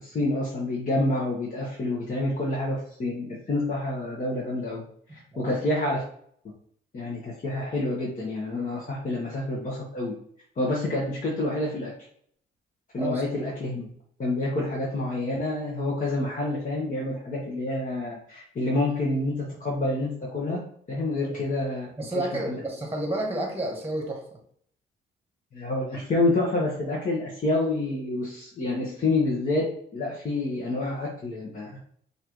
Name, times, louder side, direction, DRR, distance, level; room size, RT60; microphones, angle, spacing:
voice 1, 0.0-4.8 5.1-6.0 6.9-10.1 10.6-11.9 12.9-13.9 14.2-20.6 20.9-21.9 22.1-22.6 25.5-31.8, left 2 dB, 40° left, -4 dB, 1.2 m, -28 dB
voice 2, 5.1-5.6 13.0-13.2 21.2-21.4 22.0-24.4, right 1 dB, 10° right, 1 dB, 1.3 m, -31 dB
5.7 x 2.7 x 3.1 m, 0.63 s
cardioid pair, 90°, 20 cm